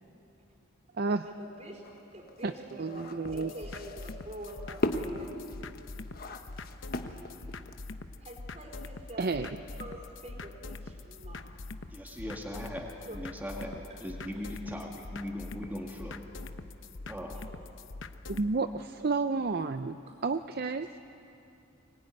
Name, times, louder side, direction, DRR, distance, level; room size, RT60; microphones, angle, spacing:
voice 1, 1.2-1.8 2.1-5.6 8.2-11.5 13.1-13.2 13.9-14.0 20.1-20.2, right 1 dB, 35° right, 1 dB, 4.2 m, -46 dB
sound 1, 1.8-8.0, left 1 dB, 50° left, 1.3 m, -37 dB
voice 2, 2.8-3.5 9.2-9.5 18.3-20.0 20.2-20.9, right 4 dB, 50° right, 10 dB, 0.5 m, -30 dB
sound 2, 3.2-18.5, left 3 dB, 65° left, 0.9 m, -44 dB
voice 3, 11.9-16.2 17.1-17.4, equal, 10° right, -1 dB, 2.0 m, -39 dB
24.0 x 20.0 x 9.7 m, 2.9 s
head